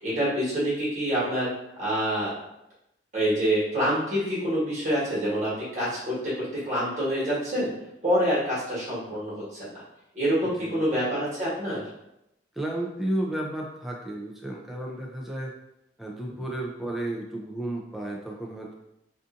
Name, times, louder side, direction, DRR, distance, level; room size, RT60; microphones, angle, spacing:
voice 1, 0.0-1.5 1.8-2.3 3.1-7.7 8.0-9.7 10.1-11.8, equal, 40° right, -10 dB, 1.3 m, -26 dB
voice 2, 10.4-10.9 12.5-15.5 16.0-18.7, right 1 dB, ahead, -2 dB, 0.3 m, -33 dB
2.5 x 2.5 x 2.5 m, 0.86 s
head